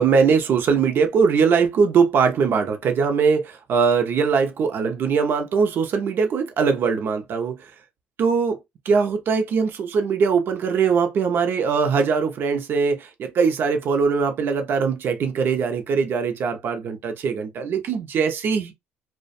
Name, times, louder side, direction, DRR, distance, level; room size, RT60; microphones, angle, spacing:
voice 1, 0.0-7.6 8.2-8.6 8.9-18.7, right 5 dB, 55° right, 0.6 m, -21 dB
2.4 x 2.2 x 2.5 m
cardioid pair, 95°, 4 cm